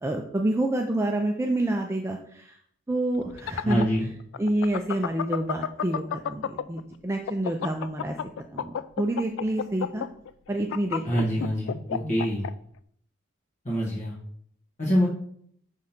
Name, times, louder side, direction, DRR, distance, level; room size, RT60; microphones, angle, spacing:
voice 1, 0.0-2.6 2.9-3.9 4.4-8.2 8.5-10.0 10.5-11.5 12.0-12.2, right 1 dB, 15° right, 2 dB, 0.4 m, -28 dB
sound 1, 3.2-6.8 7.1-12.5, left 8 dB, 65° left, 0.3 m, -30 dB
voice 2, 3.6-4.1 11.0-12.5 13.6-14.1 14.8-15.1, equal, 35° left, -6 dB, 1.4 m, -25 dB
5.4 x 3.7 x 5.8 m, 0.65 s
head